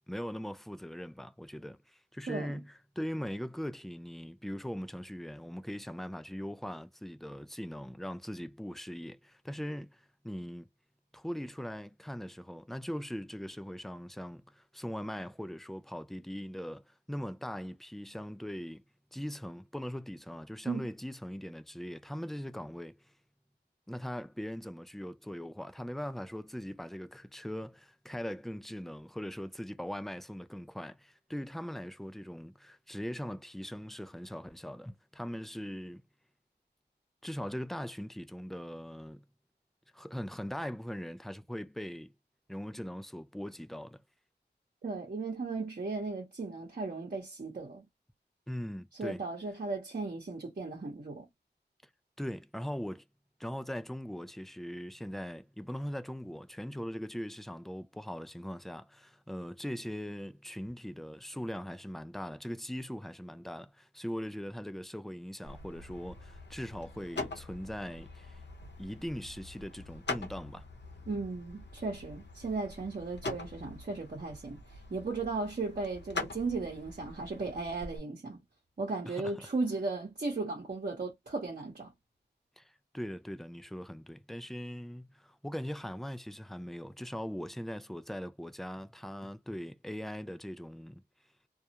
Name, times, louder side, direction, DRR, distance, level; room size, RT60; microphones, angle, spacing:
voice 1, 0.1-10.7 11.1-18.8 19.1-23.0 23.9-36.0 37.2-39.2 39.9-42.1 42.5-44.0 48.5-49.2 52.2-53.0 53.4-68.4 68.8-70.7 79.1-79.5 82.6-91.0, equal, ahead, 0.3 m, -40 dB
voice 2, 2.3-2.6 20.7-20.9 44.8-47.8 48.9-51.3 71.1-78.4 78.8-81.9, right 3 dB, 55° right, 0.9 m, -36 dB
sound 1, 65.4-78.0, left 3 dB, 75° left, 0.7 m, -44 dB
2.3 x 2.0 x 2.8 m
wide cardioid pair, 50°, 18 cm